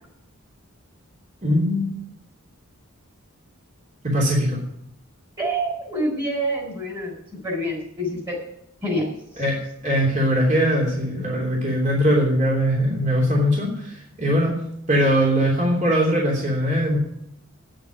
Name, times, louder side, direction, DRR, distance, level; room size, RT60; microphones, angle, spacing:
voice 1, 1.4-1.9 4.0-4.6 9.4-9.6 9.8-14.6 14.9-17.0, equal, 35° right, -3 dB, 3.2 m, -21 dB
voice 2, 5.4-7.2 7.4-8.4 8.8-9.1, right 1 dB, 20° right, 0 dB, 3.8 m, -26 dB
9.5 x 8.9 x 9.3 m, 0.73 s
head